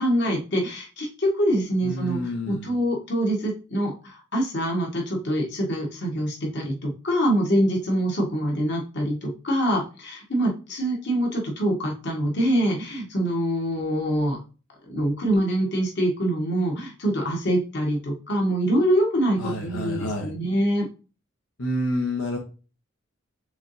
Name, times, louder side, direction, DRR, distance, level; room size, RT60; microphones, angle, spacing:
voice 1, 0.0-14.4 14.9-20.9, equal, 60° left, -1 dB, 1.5 m, -25 dB
voice 2, 1.8-2.7 19.4-20.3 21.6-22.4, left 1 dB, 90° left, 0 dB, 0.9 m, -28 dB
5.0 x 3.8 x 2.7 m, 0.33 s
head